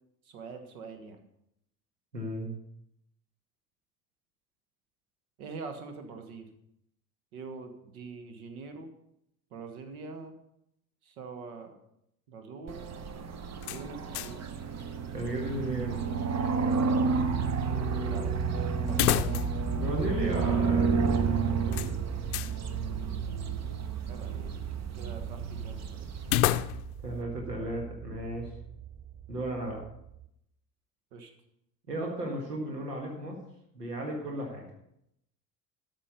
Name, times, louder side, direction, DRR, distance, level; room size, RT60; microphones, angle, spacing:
voice 1, 0.2-1.2 5.4-6.5 7.3-8.9 9.5-10.3 11.0-11.8 12.3-12.8 13.7-14.6 18.0-18.3 18.8-19.5 24.1-24.5 24.9-26.0 31.1-31.3, right 4 dB, 65° right, 7 dB, 1.6 m, -44 dB
voice 2, 2.1-2.5 15.1-16.0 19.8-22.0 27.0-28.5 29.3-29.8 31.9-33.4 33.7-34.6, right 1 dB, 85° right, 0 dB, 1.8 m, -35 dB
sound 1, 12.7-26.4, right 5 dB, 35° right, 1.0 m, -31 dB
sound 2, 13.6-14.5 14.8-14.9 18.9-19.7 20.0-20.1 21.7-22.6 26.2-27.1, left 14 dB, 65° left, 0.6 m, -30 dB
sound 3, 17.1-30.3, right 10 dB, 20° right, 0.4 m, -39 dB
13.0 x 6.2 x 5.3 m, 0.79 s
figure-of-eight pair, 60°, 46 cm